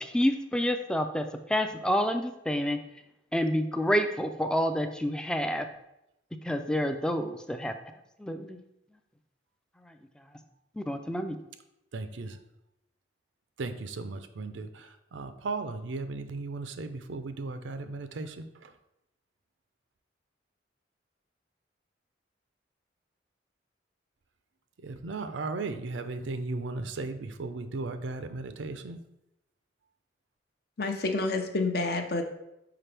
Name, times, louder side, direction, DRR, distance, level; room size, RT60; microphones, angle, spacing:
voice 1, 0.0-2.8 3.3-5.6 6.5-7.7 8.2-8.6 10.8-11.4, equal, 5° left, 8 dB, 0.3 m, -28 dB
voice 2, 11.9-12.3 13.6-14.7 15.1-18.4 24.8-29.0, right 3 dB, 90° right, 9 dB, 0.5 m, -36 dB
voice 3, 30.8-32.2, left 3 dB, 55° left, 5 dB, 0.7 m, -28 dB
5.8 x 4.9 x 3.4 m, 0.88 s
head